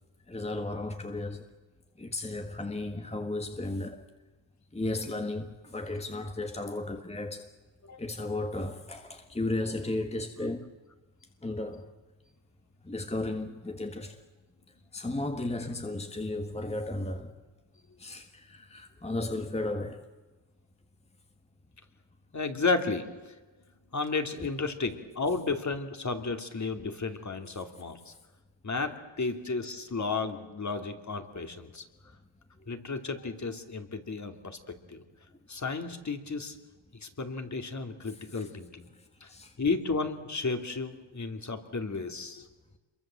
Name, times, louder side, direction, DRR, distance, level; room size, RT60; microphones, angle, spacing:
voice 1, 0.3-1.4 2.0-4.0 4.7-7.5 8.0-10.7 11.4-11.8 12.8-14.2 14.9-17.3 18.0-20.1 24.4-24.5 38.3-38.5 39.3-39.5, left 2 dB, 15° left, 1.7 m, -34 dB
voice 2, 22.3-23.2 23.9-28.1 28.6-31.8 32.7-34.6 34.9-35.0 35.5-36.6 37.0-38.9 39.2-39.3 39.6-42.5, left 4 dB, 35° left, 3.0 m, -33 dB
27.0 x 23.0 x 7.8 m
cardioid pair, 85°, 47 cm